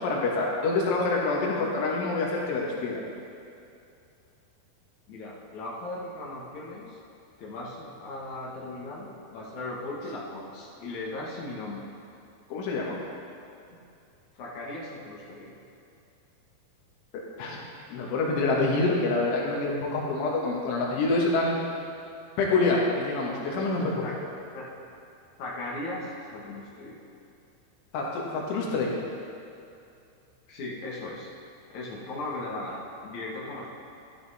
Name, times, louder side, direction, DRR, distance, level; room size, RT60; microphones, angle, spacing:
voice 1, 0.0-3.0 12.5-13.0 17.1-17.6 17.9-21.6 22.4-24.2 27.9-28.9, left 3 dB, 80° left, -3 dB, 4.1 m, -26 dB
voice 2, 5.1-7.0 7.4-11.8 13.7-13.8 14.3-15.5 24.0-24.1 24.5-24.6 25.4-27.0 30.5-31.3 31.7-33.7, left 2 dB, 60° left, -4 dB, 2.1 m, -37 dB
12.5 x 12.5 x 4.2 m, 2.6 s
omnidirectional pair, 5.5 m